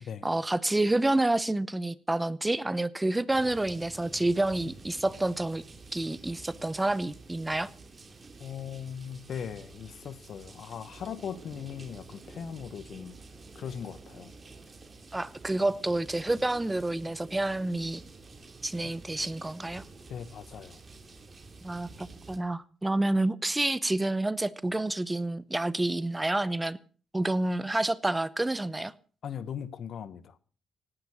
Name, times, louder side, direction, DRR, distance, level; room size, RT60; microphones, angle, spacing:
voice 1, 0.2-5.6 5.9-7.7 15.1-18.0 18.6-19.8 21.6-26.8 27.1-28.9, right 2 dB, 15° right, 0.8 m, -28 dB
sound 1, 3.3-22.4, right 3 dB, 35° right, 2.9 m, -49 dB
voice 2, 8.4-13.2 13.5-14.3 18.8-18.9 20.1-20.8 29.2-30.4, left 8 dB, 60° left, 1.3 m, -39 dB
17.0 x 11.5 x 6.3 m
cardioid pair, 90°, 0 cm